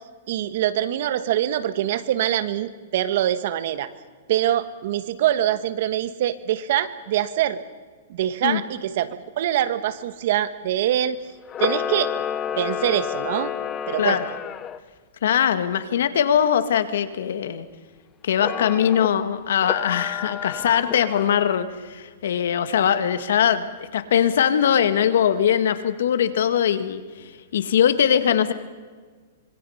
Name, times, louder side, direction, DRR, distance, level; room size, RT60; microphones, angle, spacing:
voice 1, 0.3-3.9 4.3-7.6 8.1-11.2 11.6-12.2 12.5-13.5 13.9-14.2, right 12 dB, 60° right, 12 dB, 1.4 m, -24 dB
Camera, 11.5-14.8 18.4-19.1 19.6-21.4, left 9 dB, 20° left, 0.8 m, -30 dB
voice 2, 15.2-17.7 18.2-27.0 27.5-28.5, left 9 dB, 75° left, 10 dB, 1.8 m, -21 dB
26.0 x 23.5 x 5.8 m, 1.5 s
hypercardioid pair, 150°, 0 cm